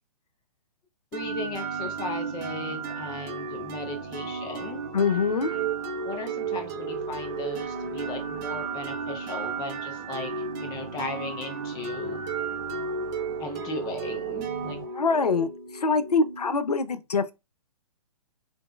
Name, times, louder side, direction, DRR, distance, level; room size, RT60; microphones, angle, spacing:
voice 1, 1.1-4.8 5.5-5.7 6.0-12.2 13.4-14.8, left 3 dB, 20° left, 0.7 m, -37 dB
sound 1, 1.1-16.7, right 5 dB, 30° right, 0.6 m, -33 dB
voice 2, 4.9-5.6 14.9-17.3, left 4 dB, 90° left, 0.5 m, -24 dB
3.7 x 2.6 x 2.2 m
figure-of-eight pair, 125°, 19 cm